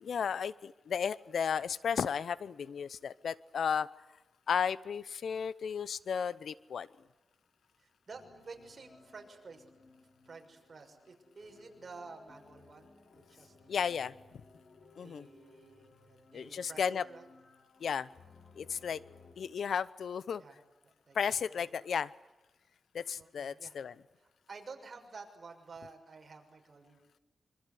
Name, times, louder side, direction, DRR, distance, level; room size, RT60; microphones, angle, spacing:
voice 1, 0.0-3.9 4.5-6.9 13.7-14.1 15.0-15.3 16.3-17.0 17.8-18.1 18.6-19.0 19.4-20.4 21.1-22.1 22.9-23.9, left 7 dB, 85° left, 18 dB, 0.8 m, -34 dB
voice 2, 7.8-9.6 10.2-12.9 13.1-13.8 15.0-17.3 20.4-20.6 21.1-21.7 23.2-23.7 24.5-27.0, right 4 dB, 45° right, 3 dB, 6.4 m, -51 dB
sound 1, 8.1-19.3, left 3 dB, 55° left, 4.8 m, -60 dB
26.5 x 25.5 x 8.5 m, 1.1 s
wide cardioid pair, 100°, 0 cm